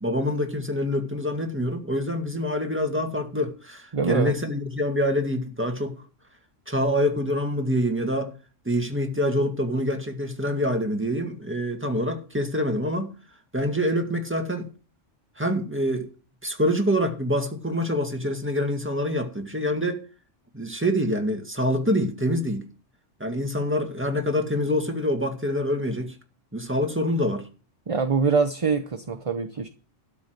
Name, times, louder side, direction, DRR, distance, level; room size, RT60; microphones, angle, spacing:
voice 1, 0.0-6.0 6.7-8.3 8.7-13.1 13.5-14.7 15.4-16.1 16.4-20.0 20.5-22.7 23.2-26.2 26.5-27.5, equal, 10° right, 1.9 m, -26 dB
voice 2, 3.9-4.3 27.9-29.7, right 5 dB, 30° right, 0.8 m, -24 dB
13.0 x 5.5 x 8.0 m
omnidirectional pair, 1.3 m